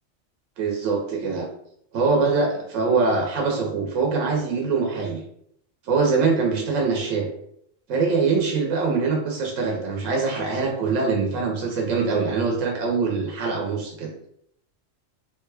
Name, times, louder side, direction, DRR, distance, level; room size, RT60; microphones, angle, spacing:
voice 1, 0.6-1.5 1.9-5.2 5.9-7.3 7.9-14.1, right 4 dB, 75° right, 1 dB, 1.0 m, -23 dB
3.6 x 2.2 x 3.3 m, 0.70 s
omnidirectional pair, 1.4 m